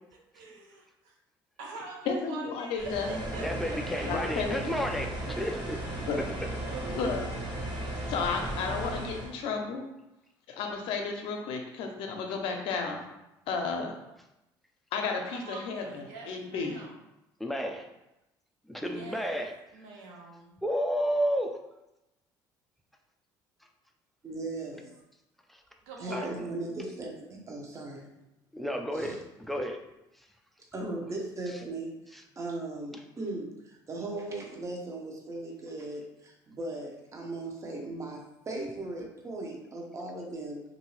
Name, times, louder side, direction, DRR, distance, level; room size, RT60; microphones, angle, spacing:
voice 1, 0.3-0.8 1.6-3.8 15.2-17.0 18.7-19.2 19.7-20.6 25.9-26.6, right 3 dB, 85° right, 0 dB, 0.7 m, -44 dB
voice 2, 2.1-3.1 4.1-4.6 6.1-6.2 6.9-7.3 8.0-9.8 10.5-13.0 13.5-14.0 14.9-16.8, left 5 dB, 75° left, 3 dB, 0.6 m, -32 dB
sound 1, 2.8-9.3, right 1 dB, 50° right, 1.2 m, -36 dB
voice 3, 3.4-5.8 6.2-6.3 17.4-17.9 18.7-19.5 20.6-21.6 25.5-25.6 26.1-26.5 28.5-29.8 30.2-30.3 31.5-31.6 32.1-32.2, equal, ahead, 3 dB, 0.4 m, -32 dB
voice 4, 24.2-24.9 26.0-28.1 28.9-29.2 30.7-40.6, right 2 dB, 30° right, 0 dB, 0.8 m, -38 dB
2.7 x 2.6 x 3.1 m, 0.93 s
supercardioid pair, 85°, 9 cm